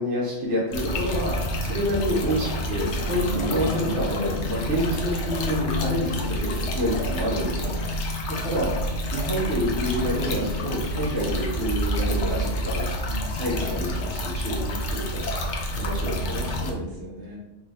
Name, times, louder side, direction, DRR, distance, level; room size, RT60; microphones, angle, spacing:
voice 1, 0.0-7.7 8.4-12.9 13.3-15.2 15.7-16.4, equal, 50° right, -6 dB, 1.3 m, -28 dB
sound 1, 0.7-16.7, equal, 75° left, 1.0 m, -28 dB
voice 2, 3.1-4.5 7.6-7.9 13.0-14.1 16.2-17.4, left 1 dB, 70° right, -5 dB, 1.6 m, -37 dB
4.4 x 3.1 x 2.8 m, 1.0 s
omnidirectional pair, 1.2 m